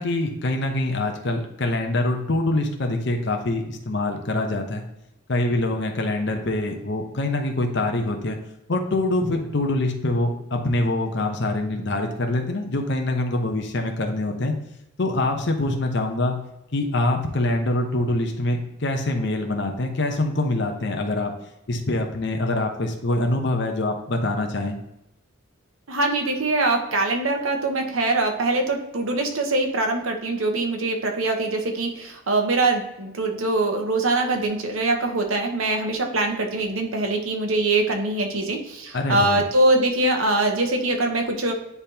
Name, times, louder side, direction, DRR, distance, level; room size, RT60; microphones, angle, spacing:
voice 1, 0.0-4.8 5.3-8.4 8.7-14.5 15.0-16.4 16.7-21.3 21.7-24.8 38.9-39.4, left 2 dB, 55° left, 3 dB, 0.8 m, -24 dB
voice 2, 25.9-41.5, right 2 dB, 90° right, 3 dB, 1.1 m, -23 dB
9.7 x 3.5 x 2.8 m, 0.86 s
head